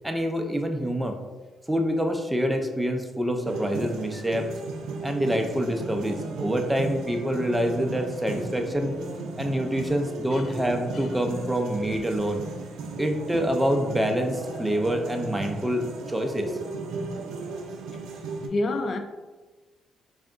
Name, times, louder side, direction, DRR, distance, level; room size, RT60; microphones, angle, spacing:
voice 1, 0.0-1.2 1.7-4.5 5.0-8.9 9.4-12.4 13.0-16.5, equal, 10° right, 0.5 m, -26 dB
sound 1, 3.4-18.5, right 3 dB, 85° right, 0.4 m, -36 dB
voice 2, 18.5-19.0, left 2 dB, 50° left, 0.4 m, -28 dB
3.4 x 2.4 x 3.7 m
cardioid pair, 90°, 0 cm